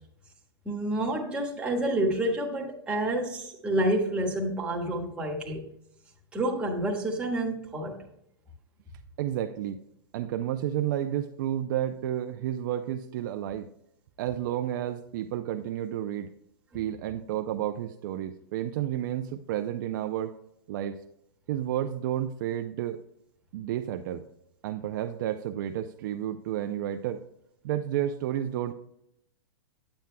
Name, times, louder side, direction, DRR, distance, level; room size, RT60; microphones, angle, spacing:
voice 1, 0.6-5.7 6.3-8.0, right 1 dB, 10° right, -1 dB, 1.5 m, -29 dB
voice 2, 9.2-9.8 10.1-13.7 14.2-16.3 16.7-20.3 20.7-21.0 21.5-23.0 23.5-24.2 24.6-27.2 27.6-28.7, right 11 dB, 50° right, 6 dB, 0.5 m, -31 dB
9.5 x 8.9 x 2.2 m, 0.76 s
hypercardioid pair, 150°, 13 cm